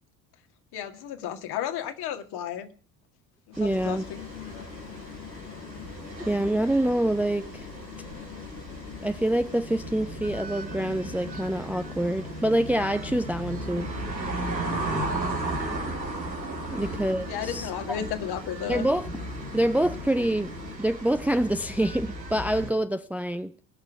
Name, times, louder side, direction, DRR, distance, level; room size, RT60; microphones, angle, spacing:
voice 1, 0.7-2.7 3.5-4.2 4.5-4.7 16.7-17.0 17.3-18.9, left 9 dB, 50° left, 7 dB, 2.1 m, -34 dB
sound 1, 3.5-22.7, right 2 dB, 90° right, 1.9 m, -36 dB
voice 2, 3.6-4.0 6.2-7.7 9.0-13.9 16.7-18.0 18.7-19.1 19.5-20.5 20.8-23.5, right 1 dB, 5° right, 9 dB, 0.7 m, -26 dB
sound 2, 3.7-20.8, left 8 dB, 75° left, 2.0 m, -43 dB
20.0 x 6.7 x 6.0 m, 0.41 s
figure-of-eight pair, 60°, 49 cm